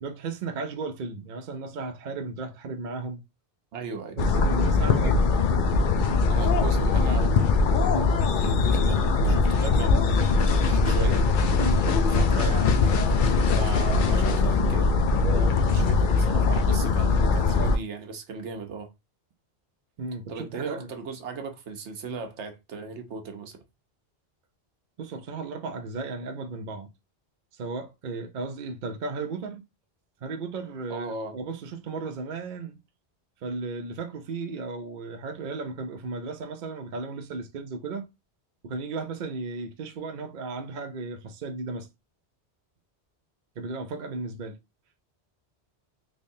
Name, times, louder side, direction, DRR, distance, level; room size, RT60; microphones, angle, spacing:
voice 1, 0.0-3.2 4.2-5.3 7.9-8.2 11.6-11.9 15.3-15.6 20.0-20.9 25.0-26.9 27.5-29.6 30.2-32.8 33.4-38.1 38.6-41.9 43.6-44.6, right 3 dB, 55° right, 0.7 m, -35 dB
voice 2, 3.7-4.2 6.3-7.4 8.4-11.3 12.0-14.9 15.7-18.9 20.3-23.6 30.9-31.4, right 4 dB, 90° right, 1.1 m, -37 dB
sound 1, 4.2-17.8, left 4 dB, 60° left, 0.6 m, -21 dB
3.4 x 3.1 x 2.7 m
omnidirectional pair, 1.1 m